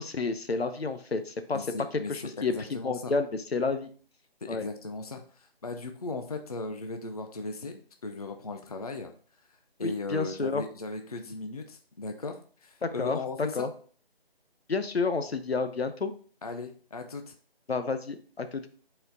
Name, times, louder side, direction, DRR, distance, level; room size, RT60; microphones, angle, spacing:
voice 1, 0.0-1.7 1.9-3.9 4.5-4.7 9.8-10.6 12.8-13.7 14.7-16.1 17.7-18.7, left 4 dB, 80° left, 9 dB, 0.9 m, -30 dB
voice 2, 1.5-2.1 2.5-3.1 4.5-9.1 9.8-13.7 16.4-17.3, left 3 dB, 40° left, 5 dB, 0.6 m, -37 dB
5.6 x 4.4 x 3.8 m, 0.43 s
figure-of-eight pair, 165°, 30 cm